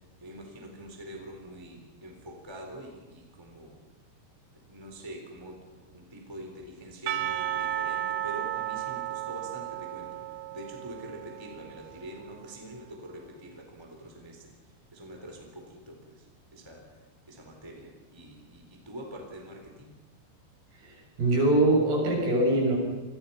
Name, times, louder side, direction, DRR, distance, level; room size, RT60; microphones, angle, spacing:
voice 1, 0.2-3.8 4.5-10.2 10.5-14.5 14.9-16.3 16.5-16.9 17.3-19.9, right 1 dB, 5° right, 2 dB, 3.6 m, -45 dB
Percussion / Church bell, 7.1-12.3, right 12 dB, 85° right, 3.6 m, -34 dB
voice 2, 20.8-22.8, right 2 dB, 55° right, -1 dB, 9.2 m, -23 dB
29.5 x 24.0 x 5.9 m, 1.2 s
omnidirectional pair, 5.3 m